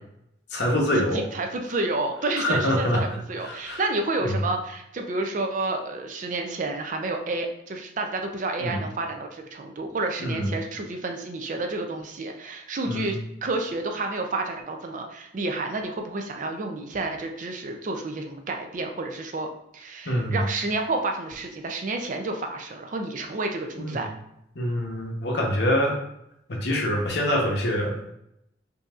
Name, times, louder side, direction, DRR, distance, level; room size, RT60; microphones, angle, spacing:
voice 1, 0.5-1.3 2.4-3.0 3.4-3.8 4.2-4.4 8.6-8.8 10.2-10.5 12.8-13.1 20.0-20.4 23.8-24.1 24.5-26.0 26.5-27.9, equal, 60° left, 0 dB, 0.9 m, -25 dB
voice 2, 1.1-19.5 19.7-24.1, right 2 dB, 45° right, 4 dB, 0.4 m, -30 dB
5.2 x 2.7 x 2.4 m, 0.79 s
head